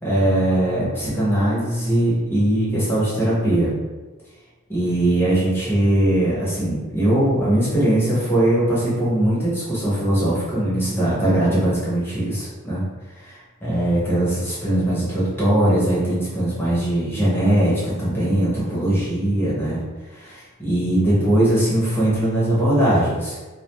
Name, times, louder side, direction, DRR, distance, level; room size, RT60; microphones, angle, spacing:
voice 1, 0.0-3.7 4.7-12.8 13.2-19.8 20.1-23.4, right 1 dB, 10° left, -9 dB, 0.7 m, -20 dB
2.3 x 2.1 x 3.0 m, 1.3 s
head